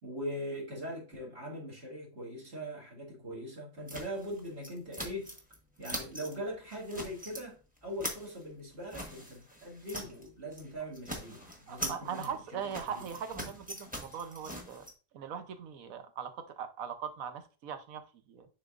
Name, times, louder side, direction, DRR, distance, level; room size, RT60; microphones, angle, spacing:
voice 1, 0.0-5.3 5.8-12.3 12.9-13.0, equal, 45° right, 2.1 m, -41 dB
sound 1, 3.9-5.6 5.8-6.4 6.7-7.4 7.8-10.3 10.5-10.7 10.9-14.9, equal, 5° right, 1.0 m, -42 dB
voice 2, 11.7-14.9 15.1-18.5, right 7 dB, 75° right, 1.2 m, -40 dB
9.8 x 4.0 x 2.4 m
omnidirectional pair, 1.5 m